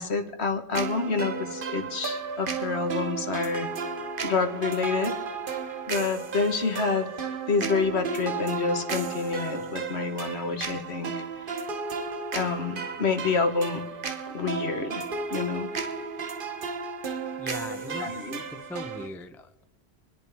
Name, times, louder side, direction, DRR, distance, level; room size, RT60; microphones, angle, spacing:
voice 1, 0.0-3.7 4.2-5.2 5.9-11.2 12.3-13.8 14.3-15.0 15.3-15.7 17.9-18.4, left 4 dB, 60° left, 7 dB, 1.6 m, -28 dB
sound 1, 0.7-19.1, right 5 dB, 50° right, 1.1 m, -33 dB
voice 2, 17.4-18.2 18.5-19.6, left 1 dB, ahead, 8 dB, 0.5 m, -40 dB
27.0 x 11.0 x 3.5 m, 0.94 s
omnidirectional pair, 1.2 m